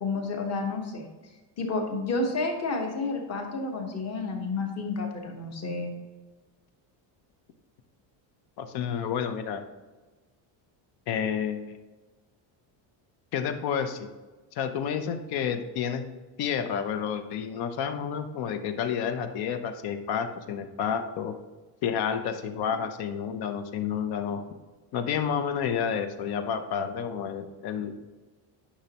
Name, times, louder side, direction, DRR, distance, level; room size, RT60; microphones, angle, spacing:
voice 1, 0.0-1.1 1.6-5.9, left 3 dB, 30° left, 2 dB, 1.2 m, -30 dB
voice 2, 8.6-9.6 11.1-11.8 13.3-14.1 14.5-16.1 16.4-21.3 21.8-24.4 24.9-27.9, left 7 dB, 50° left, 9 dB, 0.7 m, -30 dB
10.0 x 6.2 x 2.9 m, 1.2 s
cardioid pair, 175°, 49 cm